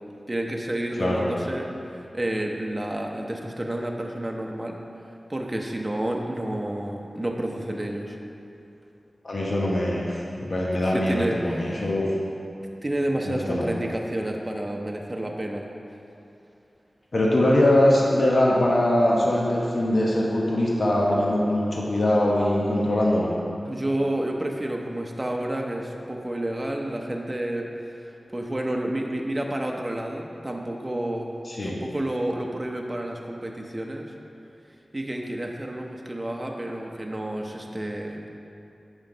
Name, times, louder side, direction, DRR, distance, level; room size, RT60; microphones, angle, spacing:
voice 1, 0.3-4.8 5.3-8.2 10.8-11.9 12.8-15.6 23.7-31.4 31.6-34.1 34.9-38.3, right 1 dB, 25° right, 0 dB, 0.7 m, -30 dB
voice 2, 9.2-12.1 13.2-13.7 17.1-23.3 31.5-31.7, left 1 dB, 65° left, -4 dB, 1.1 m, -22 dB
8.1 x 5.7 x 3.9 m, 2.7 s
wide cardioid pair, 55°, 0 cm